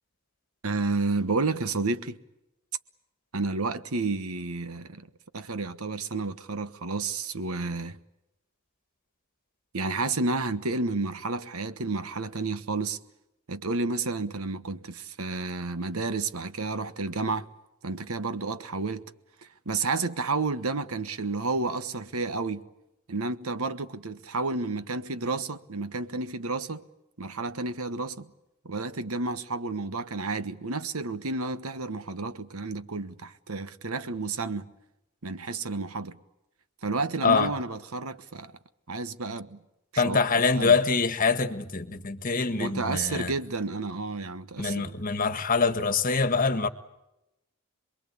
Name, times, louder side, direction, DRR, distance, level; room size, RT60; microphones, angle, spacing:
voice 1, 0.6-2.2 3.3-5.1 5.3-8.0 9.7-13.0 13.5-17.5 17.8-19.1 19.4-22.7 23.1-26.8 27.2-28.3 28.6-34.7 35.2-36.2 36.8-38.5 38.9-39.6 39.9-40.2 40.5-40.7 42.5-44.9, right 3 dB, 85° right, 1.3 m, -31 dB
voice 2, 40.0-43.3 44.6-46.7, left 4 dB, 40° left, 1.6 m, -24 dB
27.5 x 22.0 x 8.6 m
head